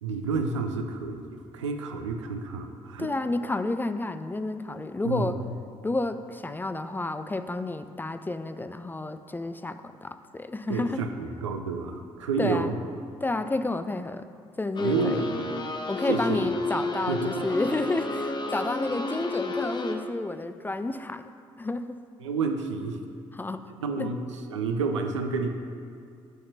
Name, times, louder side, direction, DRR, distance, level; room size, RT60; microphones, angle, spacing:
voice 1, 0.0-3.1 5.0-5.5 10.7-12.8 14.8-15.4 16.1-16.5 17.1-17.4 22.2-23.0 23.8-24.2 24.5-25.5, right 4 dB, 85° right, 5 dB, 0.5 m, -30 dB
voice 2, 3.0-5.4 5.8-11.0 12.4-12.8 13.2-14.3 14.6-15.2 15.9-21.2 21.6-22.0 23.3-23.7 24.0-24.1, left 2 dB, 15° left, 10 dB, 0.4 m, -30 dB
sound 1, 14.8-20.0, left 2 dB, 30° left, 0.7 m, -31 dB
6.5 x 4.3 x 6.4 m, 2.3 s
figure-of-eight pair, 45°, 15 cm